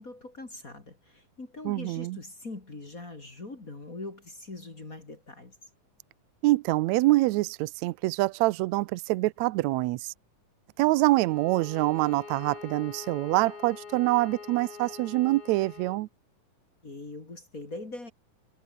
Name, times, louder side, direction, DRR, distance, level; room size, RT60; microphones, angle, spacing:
voice 1, 0.0-5.6 16.8-18.1, left 2 dB, 25° left, 3.3 m, -42 dB
voice 2, 1.6-2.2 6.4-10.1 10.8-16.1, right 19 dB, 80° right, 1.7 m, -25 dB
Bowed string instrument, 11.1-16.1, left 5 dB, 45° left, 4.1 m, -45 dB
omnidirectional pair, 3.7 m